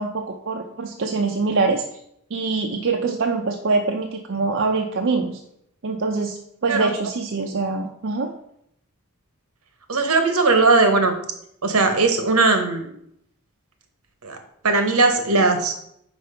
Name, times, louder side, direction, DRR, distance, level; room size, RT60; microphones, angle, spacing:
voice 1, 0.0-1.8 2.3-5.4 5.8-8.3, right 4 dB, 55° right, 2 dB, 0.5 m, -24 dB
voice 2, 9.9-11.1 11.6-12.9 14.2-14.4 14.6-15.7, right 3 dB, 75° right, 7 dB, 1.0 m, -18 dB
5.2 x 4.5 x 5.6 m, 0.73 s
head